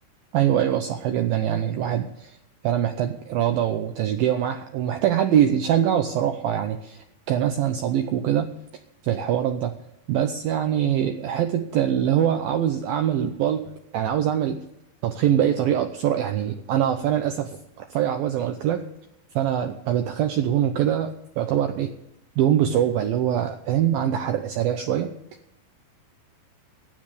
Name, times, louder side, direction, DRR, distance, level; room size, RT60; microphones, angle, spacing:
voice 1, 0.3-2.4 2.6-8.5 9.0-9.8 10.1-14.6 15.0-18.8 19.4-21.9 22.4-25.1, right 10 dB, 90° right, 7 dB, 2.1 m, -23 dB
13.0 x 9.6 x 6.7 m, 0.82 s
omnidirectional pair, 5.1 m